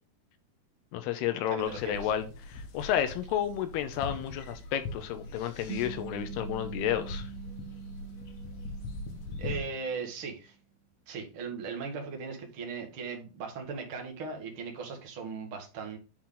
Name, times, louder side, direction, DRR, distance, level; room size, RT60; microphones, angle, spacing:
voice 1, 0.9-7.3, left 10 dB, 80° left, 9 dB, 2.7 m, -31 dB
voice 2, 1.5-2.1 9.4-10.5 11.1-16.0, right 5 dB, 50° right, 2 dB, 1.7 m, -38 dB
sound 1, 1.6-9.6, left 2 dB, 55° left, 2.1 m, -41 dB
sound 2, 5.7-10.3, right 13 dB, 75° right, 2.4 m, -45 dB
10.0 x 4.6 x 3.9 m, 0.32 s
omnidirectional pair, 4.7 m